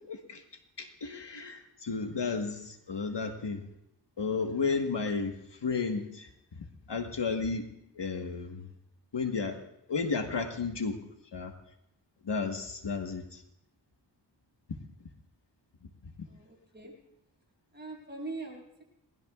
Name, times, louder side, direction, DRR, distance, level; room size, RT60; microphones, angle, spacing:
voice 1, 0.1-0.4 0.8-3.6 4.2-5.3 5.6-6.3 6.9-7.6 8.0-8.7 9.1-9.6 9.9-11.0 11.3-11.5 12.2-13.4, left 4 dB, 65° left, 5 dB, 1.3 m, -32 dB
voice 2, 16.3-16.9 17.7-18.8, right 3 dB, 25° right, -3 dB, 7.1 m, -42 dB
28.5 x 19.5 x 2.4 m, 0.81 s
wide cardioid pair, 70°, 45 cm